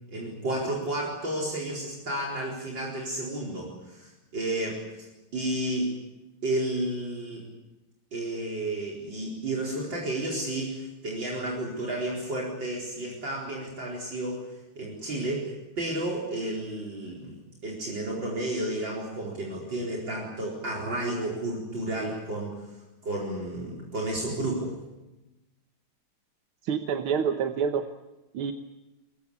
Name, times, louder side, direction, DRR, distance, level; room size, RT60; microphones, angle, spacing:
voice 1, 0.1-5.9 6.4-7.5 8.1-14.5 14.7-17.4 17.6-24.8, right 1 dB, 60° right, -3 dB, 5.1 m, -32 dB
voice 2, 26.6-27.9 28.3-28.5, right 7 dB, 85° right, 7 dB, 2.0 m, -27 dB
23.0 x 22.5 x 8.6 m, 1.0 s
omnidirectional pair, 2.3 m